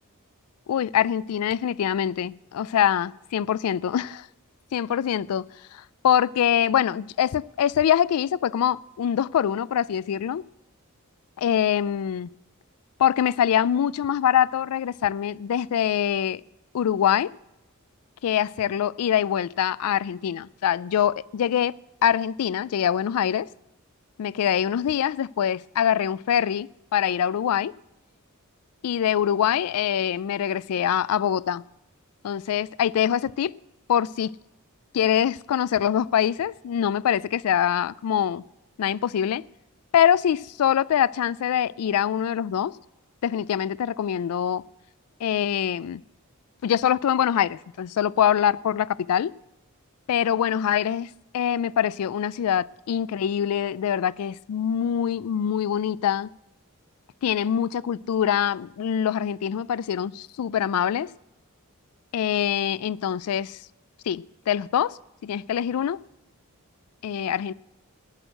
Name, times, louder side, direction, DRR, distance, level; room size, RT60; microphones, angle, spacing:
voice 1, 0.7-4.3 4.7-5.5 5.7-10.4 11.4-12.3 13.0-16.4 16.7-17.3 18.2-21.7 22.0-23.5 24.2-27.7 28.8-31.6 32.2-33.5 33.9-34.3 34.9-38.4 38.8-39.4 39.9-42.7 43.2-44.6 45.2-46.0 46.6-49.3 50.1-56.3 57.2-61.1 62.1-63.6 64.1-66.0 67.0-67.5, left 9 dB, 80° left, 0.3 m, -24 dB
19.0 x 6.3 x 6.4 m
head